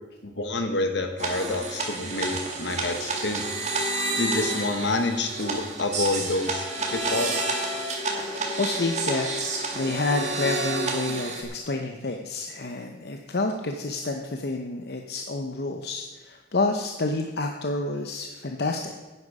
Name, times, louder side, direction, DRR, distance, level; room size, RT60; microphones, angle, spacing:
voice 1, 0.2-3.4 4.2-7.4, left 2 dB, 75° left, 6 dB, 1.3 m, -28 dB
sound 1, 1.2-11.4, right 2 dB, 40° right, 2.0 m, -29 dB
voice 2, 8.3-18.9, left 2 dB, 60° left, 4 dB, 0.8 m, -29 dB
10.5 x 9.6 x 4.9 m, 1.3 s
head